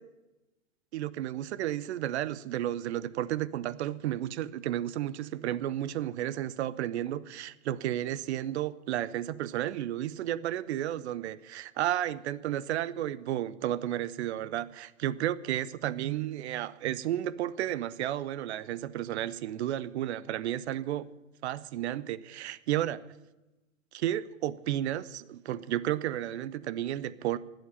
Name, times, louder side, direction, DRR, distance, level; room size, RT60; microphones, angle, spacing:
voice 1, 0.9-21.1 21.4-23.0 23.9-27.4, right 12 dB, 55° right, 18 dB, 0.8 m, -32 dB
12.5 x 8.1 x 9.6 m, 1.0 s
hypercardioid pair, 120°, 39 cm